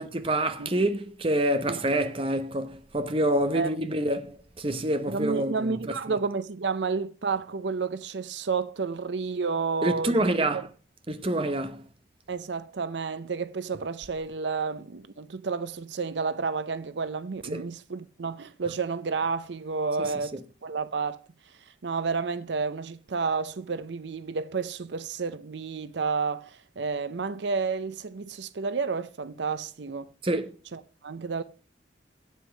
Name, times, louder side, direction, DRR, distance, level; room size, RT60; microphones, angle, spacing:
voice 1, 0.0-5.8 9.8-10.7 11.1-11.8 17.5-17.6 30.2-30.5, right 1 dB, 30° right, 0.9 m, -27 dB
voice 2, 5.1-10.6 12.3-21.2 21.5-21.6 21.8-30.1 30.7-31.4, right 4 dB, 75° right, 0.6 m, -31 dB
8.3 x 8.1 x 6.3 m
head